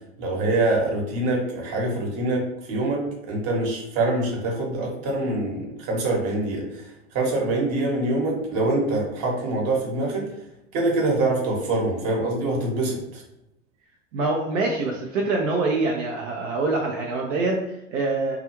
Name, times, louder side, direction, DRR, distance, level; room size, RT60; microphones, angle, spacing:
voice 1, 0.2-6.9 7.1-10.3 10.7-13.2, right 2 dB, 40° right, -1 dB, 1.0 m, -25 dB
voice 2, 14.1-18.4, right 3 dB, 75° right, 0 dB, 0.6 m, -25 dB
2.3 x 2.3 x 3.0 m, 0.83 s
hypercardioid pair, 105°, 39 cm